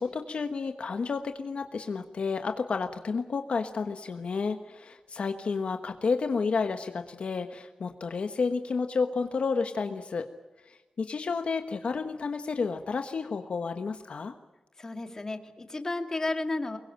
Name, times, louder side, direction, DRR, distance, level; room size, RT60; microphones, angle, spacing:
voice 1, 0.0-10.3 10.6-14.3, left 4 dB, 60° left, 7 dB, 1.3 m, -31 dB
voice 2, 14.8-16.8, left 2 dB, 25° left, 6 dB, 2.3 m, -32 dB
24.5 x 22.0 x 9.0 m, 1.2 s
wide cardioid pair, 175°, 2 cm